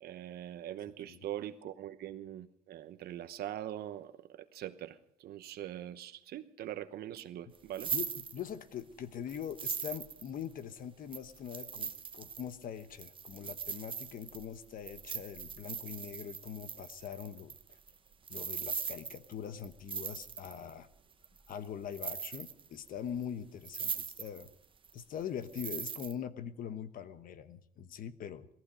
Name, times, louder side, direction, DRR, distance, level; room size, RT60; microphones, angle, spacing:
voice 1, 0.0-4.1 4.5-7.9, right 12 dB, 65° right, 10 dB, 1.0 m, -42 dB
sound 1, 7.5-8.8 9.3-10.6 11.1-20.7 21.2-21.7 21.9-22.9 23.2-23.3 23.6-24.5 24.8-26.1, right 6 dB, 30° right, 0.9 m, -40 dB
voice 2, 7.9-17.6 18.3-20.9 21.5-24.5 24.9-28.5, left 8 dB, 55° left, 12 dB, 1.0 m, -42 dB
18.0 x 14.5 x 5.1 m, 0.73 s
cardioid pair, 110°, 17 cm